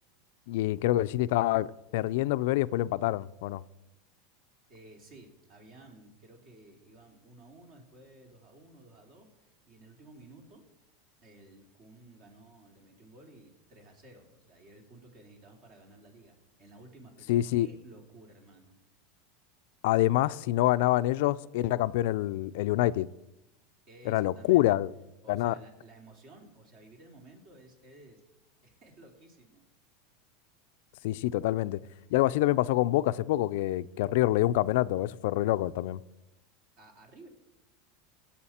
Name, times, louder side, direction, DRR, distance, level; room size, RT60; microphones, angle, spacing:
voice 1, 0.5-1.7 1.9-3.6 17.3-17.7 19.8-23.1 24.1-24.9 25.3-25.5 31.0-31.8 32.1-36.0, left 16 dB, 70° left, 0.3 m, -26 dB
voice 2, 4.7-10.6 11.2-18.8 23.9-24.8 25.2-28.2 28.6-29.6 36.8-37.3, right 2 dB, 50° right, 2.8 m, -54 dB
16.5 x 7.2 x 4.3 m
supercardioid pair, 130°, 0 cm